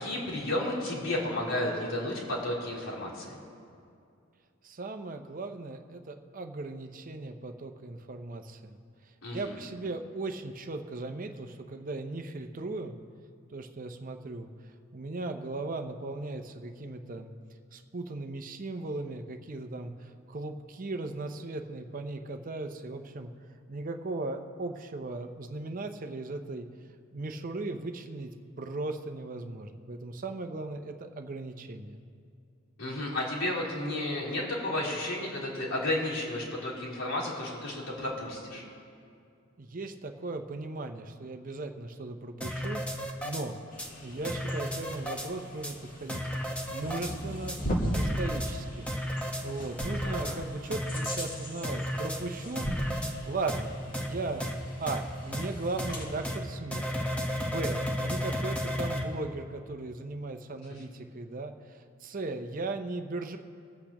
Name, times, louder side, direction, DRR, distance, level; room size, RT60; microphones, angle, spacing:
voice 1, 0.0-3.4 9.2-9.6 32.8-38.6 50.0-50.4, left 1 dB, 75° left, -7 dB, 3.4 m, -32 dB
voice 2, 4.6-8.8 9.3-12.9 13.5-14.5 14.9-17.3 17.7-23.3 23.7-26.7 27.1-28.3 28.6-32.0 39.6-43.6 44.0-46.2 46.7-47.6 47.9-48.9 49.4-54.5 54.8-56.9 57.4-63.4, right 2 dB, 40° right, 6 dB, 0.6 m, -37 dB
sound 1, 42.4-43.4 43.8-43.9 44.2-45.3 45.6-45.7 46.1-47.1 47.5-47.6 47.9-48.5 48.9-49.4 49.8-50.4 50.7-51.3 51.6-52.2 52.6-53.1 53.5-53.6 53.9-54.1 54.4-54.5 54.9-55.0 55.3-55.5 55.8-55.9 56.2-56.4 56.7-59.0, equal, 5° left, 0.9 m, -33 dB
sound 2, 43.7-56.4, equal, 40° left, 1.6 m, -38 dB
22.5 x 8.3 x 2.9 m, 2.4 s
head